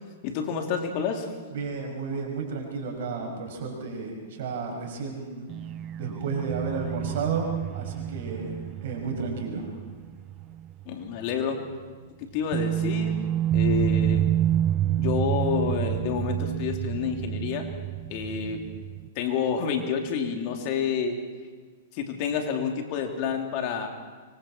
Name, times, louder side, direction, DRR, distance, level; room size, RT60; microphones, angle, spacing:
voice 1, 0.2-1.3 10.8-11.6 12.2-13.2 13.5-14.3 15.0-17.7 18.1-18.6 19.1-21.2 21.9-23.9, left 6 dB, 50° left, 3 dB, 3.0 m, -29 dB
voice 2, 1.5-5.5 5.9-7.5 7.7-8.5 8.8-9.7, right 5 dB, 65° right, 2 dB, 6.0 m, -32 dB
sound 1, 5.5-10.9 11.2-11.3 12.5-19.1, right 11 dB, 35° right, 0.7 m, -28 dB
25.0 x 24.5 x 4.5 m, 1.4 s
hypercardioid pair, 110°, 0 cm